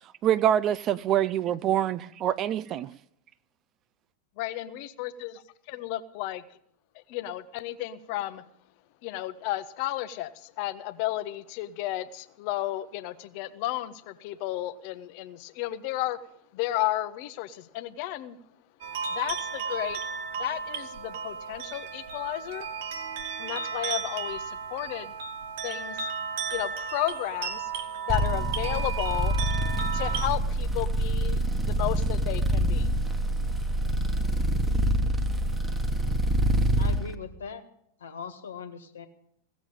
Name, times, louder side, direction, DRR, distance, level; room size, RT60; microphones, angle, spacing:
voice 1, 0.2-2.9, right 11 dB, 35° right, 18 dB, 0.5 m, -25 dB
voice 2, 4.4-5.3 5.7-6.4 6.9-8.4 9.0-16.2 16.5-18.4 19.1-20.0 20.4-22.7 23.4-25.1 25.6-26.1 26.5-27.7 28.1-29.3 29.9-32.9, left 15 dB, 45° left, 14 dB, 0.8 m, -33 dB
sound 1, 18.8-30.3, right 6 dB, 55° right, 1.5 m, -34 dB
sound 2, 28.1-37.0, right 1 dB, 10° right, 1.2 m, -26 dB
voice 3, 36.8-37.6 38.0-39.1, left 5 dB, 65° left, 8 dB, 1.5 m, -40 dB
16.5 x 7.2 x 9.1 m, 0.71 s
figure-of-eight pair, 90°, 0 cm